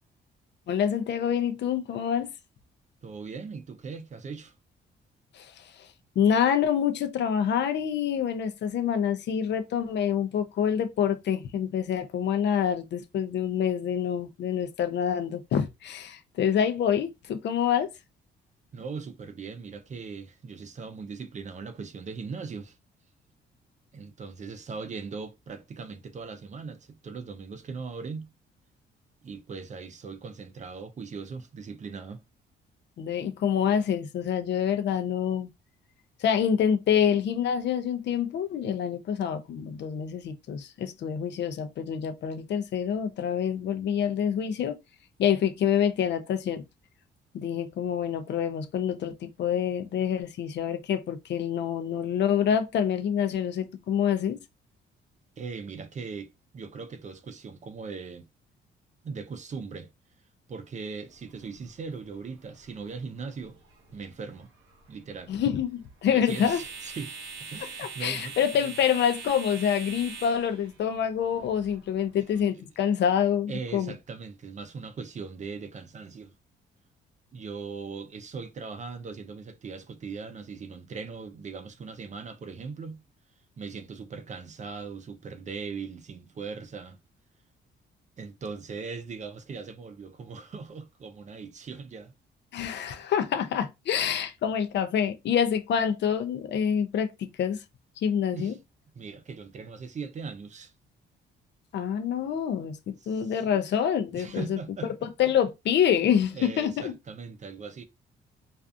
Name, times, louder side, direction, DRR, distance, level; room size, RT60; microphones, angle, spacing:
voice 1, 0.7-2.3 5.3-5.9 6.2-17.9 33.0-35.5 36.2-44.8 45.2-46.6 47.3-54.4 65.3-66.6 67.8-73.9 92.5-97.6 98.0-98.5 101.7-106.9, left 8 dB, 60° left, 0.5 m, -27 dB
voice 2, 3.0-4.5 18.7-22.8 23.9-28.3 29.2-32.2 55.4-58.3 59.0-59.9 60.5-63.6 63.9-64.5 64.9-65.3 66.1-67.1 67.5-68.3 73.5-76.3 77.3-83.0 83.6-87.0 88.2-92.1 98.3-98.6 99.0-100.7 103.0-103.6 104.1-104.9 106.3-107.8, right 5 dB, 35° right, 0.5 m, -39 dB
sound 1, 61.1-72.4, right 5 dB, 90° right, 0.7 m, -44 dB
2.5 x 2.3 x 2.5 m
cardioid pair, 90°, 20 cm